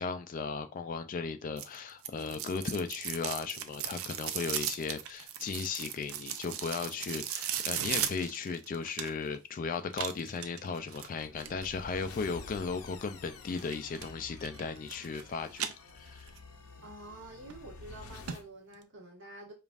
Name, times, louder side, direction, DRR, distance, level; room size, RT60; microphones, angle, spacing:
voice 1, 0.0-16.3, left 5 dB, 40° left, 0.3 m, -36 dB
sound 1, 1.6-9.4 9.9-11.7 13.6-14.1 14.4-15.2 15.5-16.4 16.8-16.9 17.5-17.6 17.9-18.0 18.3-18.4 18.7-18.8, right 9 dB, 70° right, 0.4 m, -37 dB
sound 2, 11.1-18.5, left 4 dB, 80° left, 0.7 m, -49 dB
voice 2, 16.8-19.5, right 1 dB, 55° right, 1.4 m, -48 dB
5.1 x 2.5 x 2.4 m
head